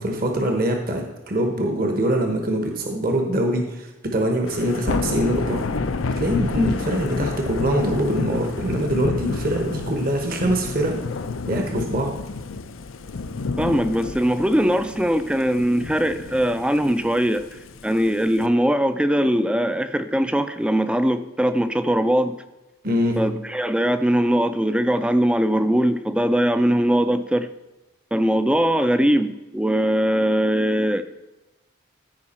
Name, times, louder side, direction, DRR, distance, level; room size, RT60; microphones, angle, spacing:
voice 1, 0.0-5.7 6.2-11.0 11.5-12.2 22.8-23.2, right 1 dB, 45° right, 3 dB, 1.0 m, -23 dB
Thunder / Rain, 4.5-18.4, left 3 dB, 75° left, 0.6 m, -30 dB
voice 2, 13.6-17.4 17.8-22.4 23.2-27.5 28.1-31.0, equal, 5° right, 11 dB, 0.4 m, -21 dB
14.5 x 4.8 x 4.2 m, 1.1 s
head